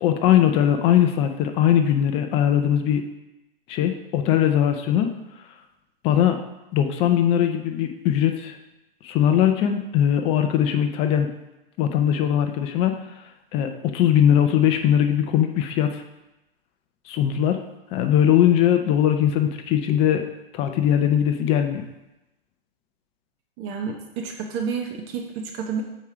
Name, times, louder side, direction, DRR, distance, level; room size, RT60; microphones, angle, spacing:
voice 1, 0.0-3.0 3.7-5.1 6.0-6.4 6.7-8.6 9.0-11.3 11.8-13.0 13.5-16.0 17.1-17.6 17.9-20.2 20.5-21.8, left 10 dB, 20° left, 6 dB, 0.5 m, -20 dB
voice 2, 23.6-25.8, right 6 dB, 30° right, 3 dB, 0.8 m, -30 dB
7.2 x 4.9 x 4.9 m, 0.96 s
hypercardioid pair, 130°, 30 cm